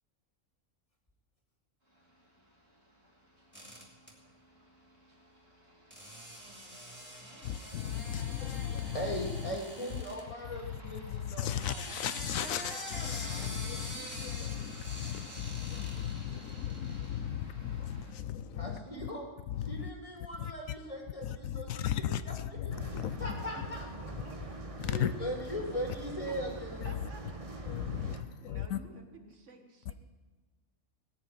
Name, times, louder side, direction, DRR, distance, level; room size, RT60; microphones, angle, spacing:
Aircraft, 1.8-18.1, equal, 45° right, 3.5 m, -57 dB
sound 1, 3.5-4.1 5.9-10.2 11.4-17.2, equal, 10° right, 3.0 m, -45 dB
voice 1, 7.4-9.6 9.9-10.0 10.6-19.1 19.5-19.9 20.4-20.5 21.2-23.4 24.8-25.1 26.8-27.1 27.7-28.8, left 10 dB, 80° left, 1.0 m, -36 dB
voice 2, 8.9-11.6 18.5-19.3 19.7-21.9 22.2-22.3 22.6-22.7 23.2-23.9 24.8-27.0, equal, 25° left, 2.8 m, -39 dB
sound 2, 22.7-28.2, right 2 dB, 25° right, 1.2 m, -43 dB
voice 3, 23.5-24.9 26.2-26.5 26.8-27.4 27.9-29.9, right 3 dB, 60° right, 1.7 m, -54 dB
18.5 x 6.9 x 9.4 m
omnidirectional pair, 1.4 m